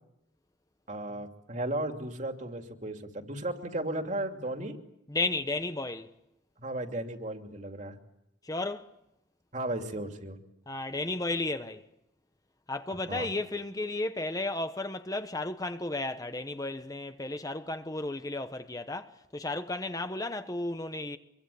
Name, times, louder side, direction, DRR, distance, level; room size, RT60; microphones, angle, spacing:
voice 1, 0.9-4.7 6.6-7.9 9.5-10.4 13.1-13.3, right 1 dB, 40° right, 2.8 m, -35 dB
voice 2, 5.1-6.1 8.4-8.9 10.7-11.8 12.7-21.2, left 2 dB, 20° left, 1.0 m, -33 dB
26.0 x 23.5 x 8.6 m
head